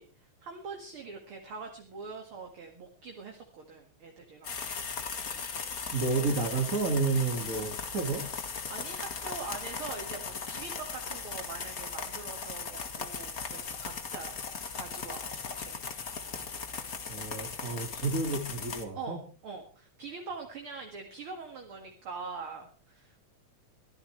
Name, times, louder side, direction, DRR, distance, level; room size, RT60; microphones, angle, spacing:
voice 1, 0.0-4.5 8.7-14.5 14.7-15.8 18.9-23.3, right 4 dB, 50° right, 2 dB, 2.6 m, -43 dB
sound 1, 4.4-18.8, left 5 dB, 35° left, 1.7 m, -38 dB
voice 2, 5.9-8.3 17.1-19.2, right 3 dB, 30° right, 2 dB, 2.1 m, -30 dB
23.0 x 14.5 x 3.2 m, 0.37 s
omnidirectional pair, 3.3 m